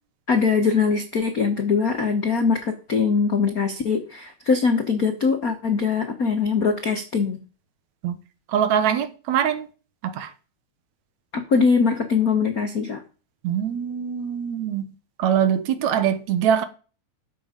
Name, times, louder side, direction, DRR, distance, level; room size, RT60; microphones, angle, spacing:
voice 1, 0.3-7.4 11.3-13.0, left 5 dB, 85° left, 0.7 m, -22 dB
voice 2, 8.5-9.7 10.0-10.3 13.4-14.9 15.2-16.7, right 9 dB, 75° right, 2.3 m, -23 dB
12.5 x 7.7 x 5.1 m
omnidirectional pair, 3.5 m